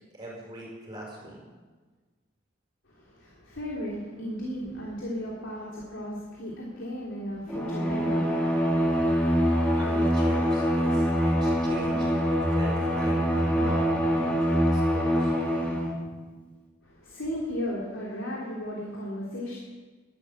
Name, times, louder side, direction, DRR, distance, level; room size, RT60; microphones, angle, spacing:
voice 1, 0.1-1.4 9.7-15.3, right 1 dB, 20° right, -4 dB, 5.6 m, -40 dB
voice 2, 2.9-9.5 16.8-19.6, equal, 85° left, -4 dB, 3.2 m, -36 dB
Bowed string instrument, 7.5-16.0, equal, 5° left, 2.5 m, -24 dB
12.5 x 11.5 x 9.0 m, 1.4 s
head